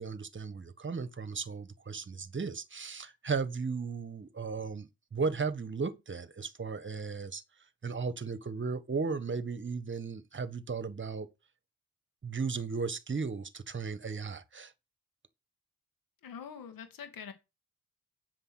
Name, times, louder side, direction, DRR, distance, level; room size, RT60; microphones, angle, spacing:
voice 1, 0.0-7.4 7.8-11.3 12.2-14.7, right 5 dB, 35° right, 1.5 m, -35 dB
voice 2, 16.2-17.3, left 7 dB, 75° left, 2.5 m, -44 dB
7.8 x 6.8 x 6.4 m
supercardioid pair, 45°, 34 cm